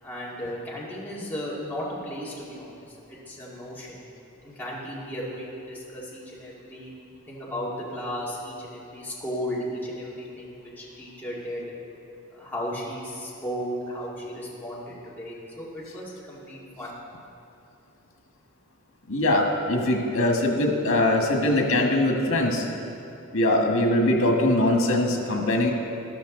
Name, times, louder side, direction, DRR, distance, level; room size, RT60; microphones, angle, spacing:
voice 1, 0.0-4.0 4.4-6.9 7.3-11.6 12.3-17.0, equal, 10° left, -7 dB, 2.1 m, -35 dB
voice 2, 19.1-22.6 23.3-25.7, left 1 dB, 90° left, 2 dB, 1.6 m, -22 dB
13.0 x 12.0 x 3.9 m, 2.8 s
head